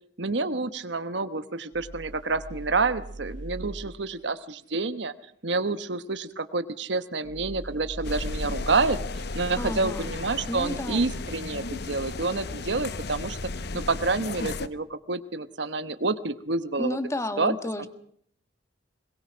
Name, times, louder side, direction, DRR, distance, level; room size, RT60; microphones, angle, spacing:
voice 1, 0.2-5.1 5.4-9.0 9.3-13.4 13.7-17.0 17.4-17.5 17.8-17.9, right 3 dB, 65° right, 11 dB, 1.1 m, -28 dB
sound 1, 1.7-3.9 7.2-8.7, right 1 dB, 80° right, 2.5 m, -39 dB
sound 2, 8.0-14.7, left 3 dB, 60° left, 0.9 m, -34 dB
voice 2, 9.6-10.1 10.5-11.1 16.8-17.9, left 1 dB, 15° left, 10 dB, 1.4 m, -31 dB
22.0 x 21.5 x 6.2 m, 0.66 s
head